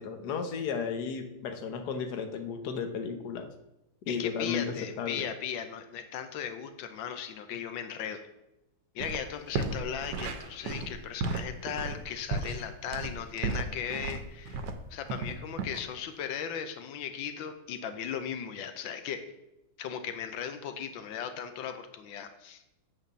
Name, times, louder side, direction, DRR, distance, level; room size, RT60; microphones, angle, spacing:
voice 1, 0.0-3.5 4.1-4.6 5.0-5.2, left 6 dB, 65° left, 6 dB, 1.4 m, -34 dB
voice 2, 4.1-8.2 8.9-19.2 19.8-22.7, left 8 dB, 90° left, 8 dB, 1.5 m, -37 dB
sound 1, 9.0-9.2 9.5-14.8 15.1-15.8, right 3 dB, 70° right, 1.3 m, -34 dB
9.2 x 4.2 x 6.7 m, 0.91 s
omnidirectional pair, 2.0 m